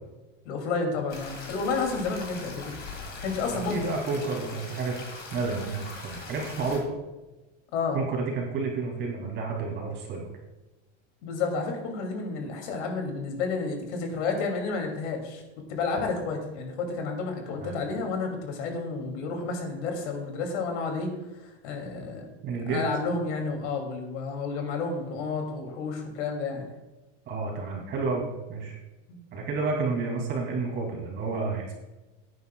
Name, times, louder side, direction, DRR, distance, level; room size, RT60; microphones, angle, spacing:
voice 1, 0.4-2.8 3.2-3.9 7.7-8.0 11.2-15.4 15.7-22.3 22.7-26.7 29.1-29.2, left 4 dB, 75° left, 2 dB, 2.8 m, -31 dB
sound 1, 1.1-6.8, left 3 dB, 30° left, 2.2 m, -41 dB
voice 2, 3.5-5.0 5.3-6.9 7.9-10.3 17.6-17.8 22.4-22.8 27.3-28.8 29.3-31.7, right 4 dB, 30° right, 0 dB, 2.7 m, -30 dB
17.5 x 9.5 x 2.3 m, 1.1 s
supercardioid pair, 155°, 35 cm